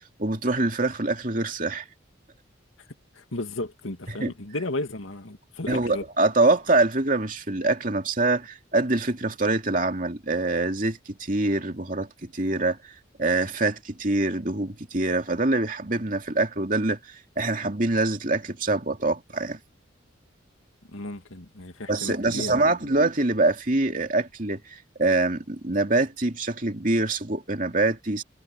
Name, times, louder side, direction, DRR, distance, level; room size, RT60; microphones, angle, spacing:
voice 1, 0.2-1.8 4.1-4.3 5.7-12.9 13.2-19.6 21.9-28.2, right 2 dB, 40° right, 2.7 m, -25 dB
voice 2, 3.1-6.0 20.9-23.0, left 2 dB, 85° left, 2.4 m, -34 dB
head